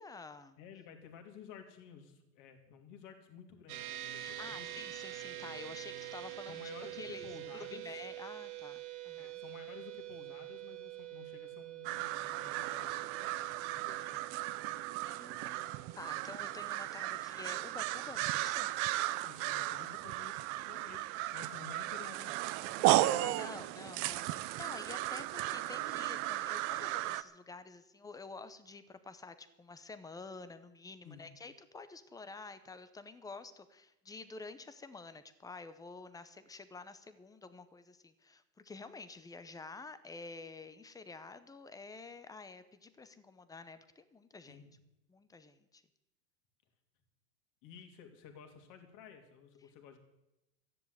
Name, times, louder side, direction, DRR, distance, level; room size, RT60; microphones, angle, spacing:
voice 1, 0.0-0.6 4.2-6.6 6.9-7.3 7.7-9.4 15.1-18.7 23.2-44.6 45.1-45.8, left 4 dB, 10° left, 12 dB, 0.7 m, -49 dB
voice 2, 0.6-4.7 6.5-7.9 9.2-14.2 19.2-23.6 31.0-31.3 44.5-44.7 47.6-50.0, left 7 dB, 40° left, 5 dB, 2.8 m, -53 dB
sound 1, 3.7-17.3, right 15 dB, 60° right, 2.1 m, -46 dB
Bosque crows, 11.8-27.2, right 16 dB, 30° right, 0.5 m, -35 dB
13.5 x 10.5 x 8.0 m, 0.91 s
hypercardioid pair, 125°, 48 cm